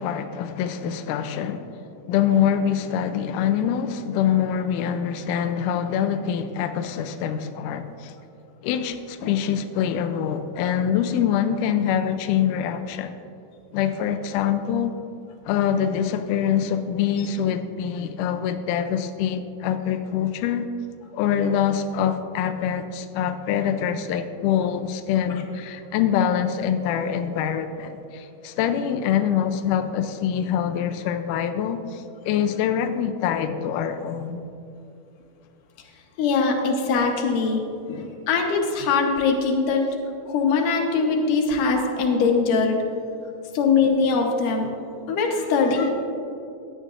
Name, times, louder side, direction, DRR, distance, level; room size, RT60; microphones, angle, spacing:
voice 1, 0.0-8.1 8.6-13.1 13.7-15.0 15.5-20.7 21.1-34.4, left 8 dB, 85° left, 8 dB, 1.8 m, -25 dB
voice 2, 36.2-37.6 37.9-39.9 40.3-42.8 43.5-44.7 45.1-45.9, left 4 dB, 70° left, 2 dB, 2.5 m, -22 dB
15.5 x 11.0 x 2.5 m, 2.7 s
omnidirectional pair, 4.3 m